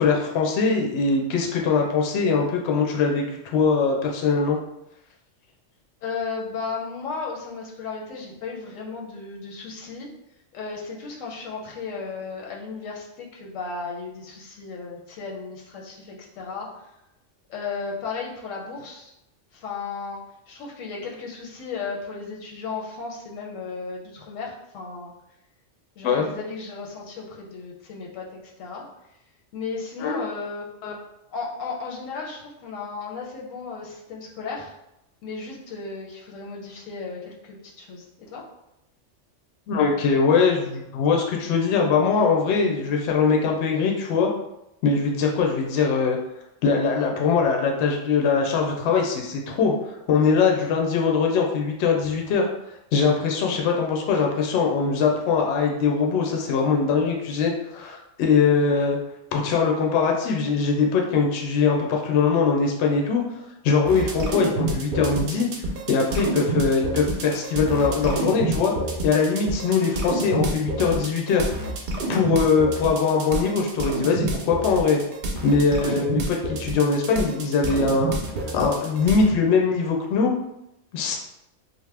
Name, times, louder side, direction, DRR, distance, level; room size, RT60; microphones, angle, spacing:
voice 1, 0.0-4.6 26.0-26.3 30.0-30.2 30.8-30.9 39.7-44.3 44.8-46.2 46.6-49.7 50.1-52.4 52.9-59.0 59.3-63.2 63.6-65.5 65.9-68.7 69.0-71.5 72.1-75.0 75.4-78.1 78.5-80.3 80.9-81.2, left 5 dB, 70° left, 1 dB, 0.8 m, -22 dB
voice 2, 6.0-10.1 10.5-16.9 17.5-19.1 19.5-20.2 20.5-25.1 26.0-28.8 29.5-30.7 31.3-34.7 35.2-38.4 75.9-76.0, left 4 dB, 90° left, -1 dB, 1.1 m, -35 dB
sound 1, 63.9-79.3, right 2 dB, 60° right, 0.5 m, -28 dB
2.8 x 2.1 x 3.2 m, 0.86 s
omnidirectional pair, 1.3 m